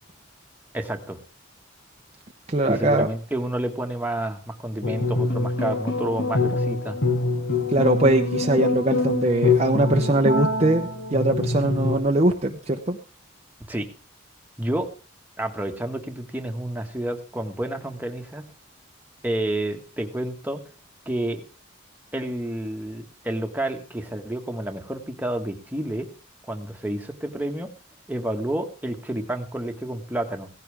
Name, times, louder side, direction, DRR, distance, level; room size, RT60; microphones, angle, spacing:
voice 1, 0.7-1.2 2.6-7.0 13.7-13.9 14.6-14.9 15.4-18.4 19.2-20.6 21.0-21.4 22.1-26.1 26.5-27.7 28.1-30.5, right 1 dB, 10° right, 3 dB, 1.6 m, -29 dB
voice 2, 2.5-3.1 7.7-13.0, right 1 dB, 35° right, 3 dB, 0.9 m, -21 dB
sound 1, 4.8-11.9, left 3 dB, 55° left, 2.1 m, -24 dB
17.0 x 15.0 x 3.6 m, 0.36 s
head